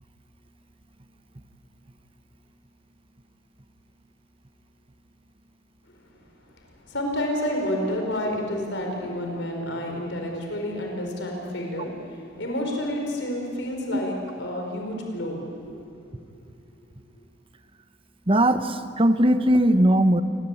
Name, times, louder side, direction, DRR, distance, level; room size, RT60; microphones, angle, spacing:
voice 1, 6.8-15.7 16.1-16.5, left 1 dB, 75° left, 1 dB, 5.3 m, -30 dB
voice 2, 18.3-20.2, right 1 dB, 30° right, 10 dB, 1.2 m, -19 dB
28.0 x 22.5 x 8.7 m, 2.4 s
head